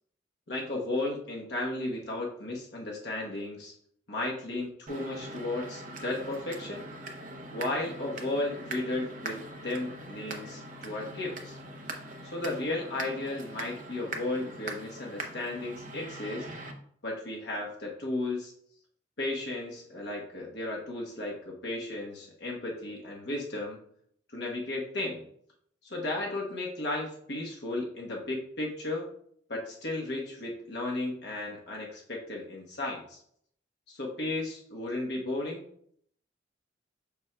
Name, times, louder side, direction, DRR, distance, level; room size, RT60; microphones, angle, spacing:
voice 1, 0.5-3.7 4.1-6.9 7.5-11.6 12.2-16.5 17.0-18.5 19.2-23.8 24.3-25.2 25.8-29.1 29.5-33.2 33.9-35.6, left 2 dB, 60° left, -2 dB, 1.1 m, -34 dB
sound 1, 4.9-16.7, right 2 dB, 40° right, 0.8 m, -42 dB
6.8 x 6.2 x 2.2 m, 0.66 s
head